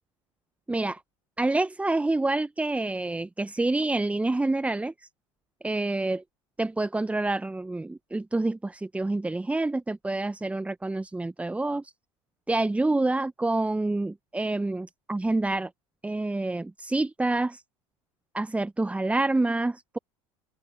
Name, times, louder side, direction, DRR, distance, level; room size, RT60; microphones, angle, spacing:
voice 1, 0.7-1.0 1.4-4.9 5.6-6.2 6.6-11.9 12.5-15.7 16.0-17.6 18.3-20.0, right 2 dB, 5° right, 0.9 m, -27 dB
open air
figure-of-eight pair, 75°, 18 cm